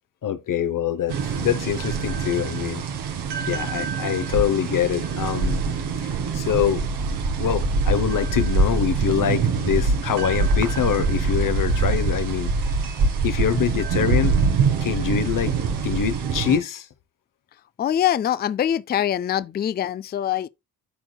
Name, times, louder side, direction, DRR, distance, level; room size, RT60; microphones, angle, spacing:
voice 1, 0.2-2.8 3.5-5.6 6.0-6.8 7.4-12.5 13.2-14.4 14.8-15.5 15.8-16.9, left 9 dB, 55° left, 0.9 m, -24 dB
sound 1, 1.1-16.6, right 4 dB, 85° right, 1.7 m, -24 dB
voice 2, 17.8-20.5, left 10 dB, 25° left, 0.4 m, -23 dB
13.0 x 4.5 x 2.3 m
cardioid pair, 70°, 38 cm